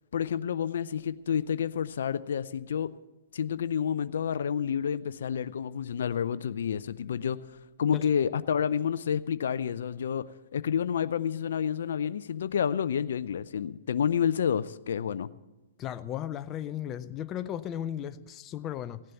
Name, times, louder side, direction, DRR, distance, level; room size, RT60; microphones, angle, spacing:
voice 1, 0.1-2.9 3.3-7.4 7.8-10.3 10.5-15.3, left 8 dB, 75° left, 0.4 m, -29 dB
voice 2, 15.8-19.0, left 11 dB, 30° left, 0.6 m, -35 dB
16.5 x 7.5 x 6.9 m
hypercardioid pair, 130°, 0 cm